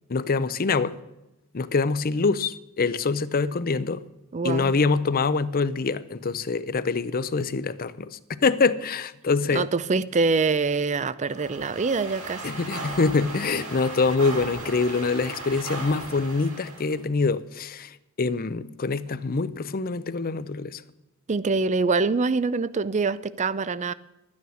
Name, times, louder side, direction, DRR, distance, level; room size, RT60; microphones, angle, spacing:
voice 1, 0.1-0.9 1.5-4.0 4.4-9.7 12.4-20.8, left 4 dB, 40° left, 0.6 m, -25 dB
voice 2, 4.3-4.7 9.5-12.5 21.3-23.9, right 4 dB, 30° right, 0.5 m, -25 dB
sound 1, 11.3-17.0, right 2 dB, 70° right, 3.6 m, -37 dB
12.5 x 9.5 x 6.3 m
head